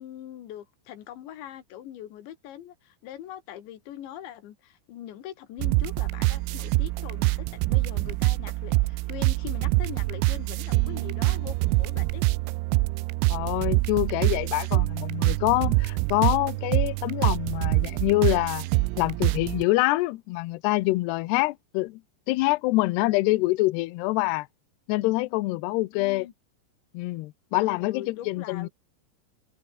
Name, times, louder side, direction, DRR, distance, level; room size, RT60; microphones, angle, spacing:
voice 1, 0.0-12.2 25.9-26.3 27.7-28.7, left 11 dB, 70° left, 4.2 m, -42 dB
sound 1, 5.6-19.6, right 22 dB, 90° right, 3.3 m, -25 dB
voice 2, 13.3-18.7 19.0-22.0 22.3-24.5 24.9-26.3 26.9-28.7, left 21 dB, 90° left, 2.4 m, -25 dB
omnidirectional pair, 5.7 m